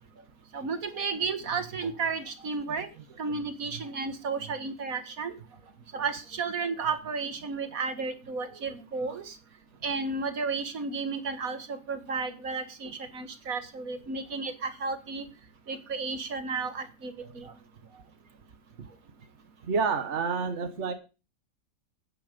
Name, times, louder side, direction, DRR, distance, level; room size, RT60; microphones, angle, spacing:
voice 1, 0.5-2.9 3.2-5.3 5.9-9.4 9.8-15.2 15.7-17.5, right 4 dB, 75° right, 10 dB, 2.0 m, -33 dB
voice 2, 19.7-20.9, right 5 dB, 55° right, 8 dB, 1.6 m, -28 dB
14.5 x 9.5 x 5.3 m, 0.32 s
omnidirectional pair, 1.5 m